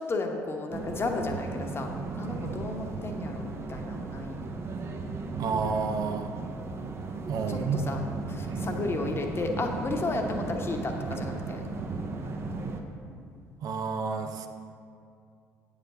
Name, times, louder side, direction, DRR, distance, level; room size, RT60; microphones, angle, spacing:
voice 1, 0.0-1.9 2.2-4.5 7.5-8.0 8.3-11.7, left 3 dB, 30° left, 3 dB, 1.1 m, -33 dB
sound 1, 0.7-12.8, right 3 dB, 35° right, 0.9 m, -36 dB
voice 2, 5.4-6.3 7.3-7.8 8.4-8.7 13.6-14.5, right 5 dB, 50° right, 6 dB, 0.6 m, -30 dB
8.9 x 4.9 x 6.9 m, 2.4 s
figure-of-eight pair, 50°, 8 cm